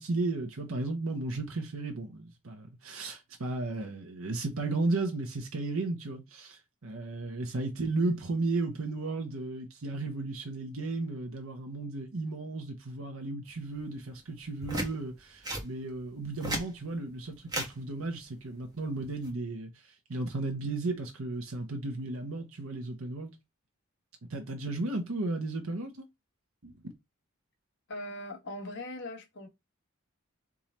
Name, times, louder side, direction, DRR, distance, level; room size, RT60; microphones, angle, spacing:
voice 1, 0.0-23.3 24.3-26.0 26.6-26.8, right 2 dB, 80° right, 0.9 m, -34 dB
sound 1, 14.6-14.9 15.4-15.7 16.2-16.7 17.5-17.7 19.0-19.3, right 1 dB, 20° right, 1.3 m, -33 dB
voice 2, 27.9-29.5, left 1 dB, 60° left, 1.4 m, -40 dB
3.7 x 3.0 x 4.1 m
head